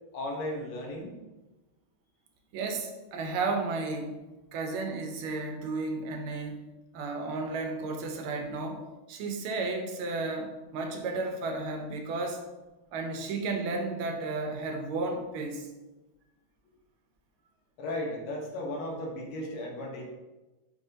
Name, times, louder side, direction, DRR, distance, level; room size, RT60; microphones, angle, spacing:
voice 1, 0.1-1.2 17.8-20.0, left 1 dB, 85° left, -1 dB, 1.8 m, -35 dB
voice 2, 2.5-4.2 4.5-6.6 6.9-12.4 12.9-15.7, right 3 dB, 85° right, 4 dB, 1.5 m, -33 dB
5.5 x 3.7 x 2.6 m, 1.1 s
omnidirectional pair, 2.3 m